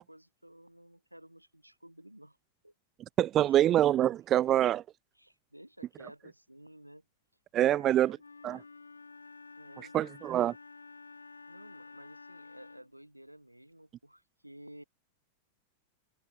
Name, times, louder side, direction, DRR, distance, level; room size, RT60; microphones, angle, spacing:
voice 1, 0.0-2.4 2.6-2.7 3.3-3.8 4.3-4.6 5.1-7.0 7.7-8.2 9.6-10.0 11.5-14.8, right 1 dB, 90° right, 4.3 m, -53 dB
voice 2, 3.2-4.8 7.5-8.1 8.4-8.6 9.9-10.5, right 12 dB, 30° right, 0.3 m, -25 dB
Wind instrument woodwind instrument, 8.2-13.0, left 4 dB, 80° left, 2.3 m, -51 dB
open air
figure-of-eight pair, 90°, 0 cm